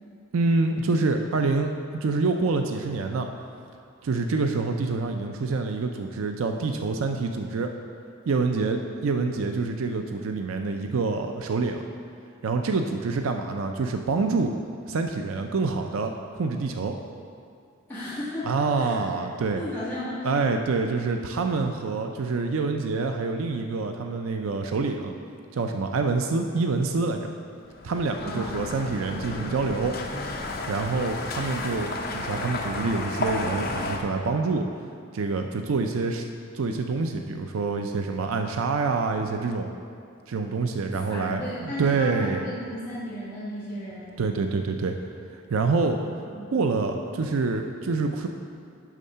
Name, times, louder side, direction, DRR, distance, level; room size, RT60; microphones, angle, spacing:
voice 1, 0.3-1.7 2.0-3.3 4.0-7.7 8.3-11.8 12.4-14.5 14.9-17.0 18.4-19.6 20.2-25.2 25.5-27.3 27.8-30.0 30.7-34.7 35.1-36.3 36.5-39.7 40.3-42.4 44.2-44.9 45.3-46.0 46.5-48.3, right 4 dB, 90° right, 5 dB, 0.4 m, -26 dB
voice 2, 17.9-19.0 19.6-20.3 28.2-28.6 40.9-44.2 46.0-46.5, left 1 dB, 10° left, -12 dB, 1.5 m, -35 dB
sound 1, 27.7-34.0, left 2 dB, 50° left, 0.7 m, -32 dB
11.0 x 3.7 x 5.5 m, 2.3 s
head